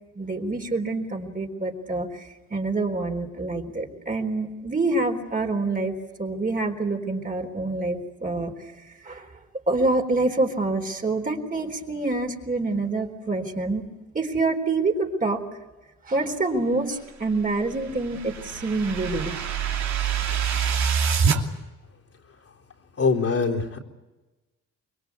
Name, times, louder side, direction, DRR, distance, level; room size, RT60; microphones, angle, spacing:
voice 1, 0.2-9.3 9.7-13.8 14.1-15.4 16.0-19.3, right 3 dB, 30° right, 3 dB, 3.9 m, -26 dB
sound 1, 17.4-21.4, right 7 dB, 65° right, 2.8 m, -26 dB
voice 2, 23.0-23.8, left 4 dB, 50° left, 0 dB, 3.9 m, -23 dB
25.5 x 22.0 x 8.4 m, 1.1 s
cardioid pair, 90°, 30 cm